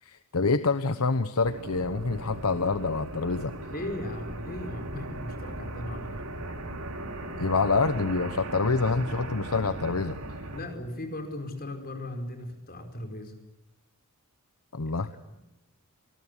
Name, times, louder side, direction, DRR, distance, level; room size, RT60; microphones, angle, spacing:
voice 1, 0.0-3.5 7.4-10.2 14.7-15.1, left 4 dB, 75° left, 11 dB, 1.0 m, -26 dB
sound 1, 1.4-10.6, right 1 dB, 80° right, 4.0 m, -38 dB
voice 2, 3.7-6.2 10.5-13.3 14.8-15.4, left 1 dB, 45° left, 5 dB, 5.0 m, -38 dB
26.5 x 20.5 x 9.8 m, 0.96 s
head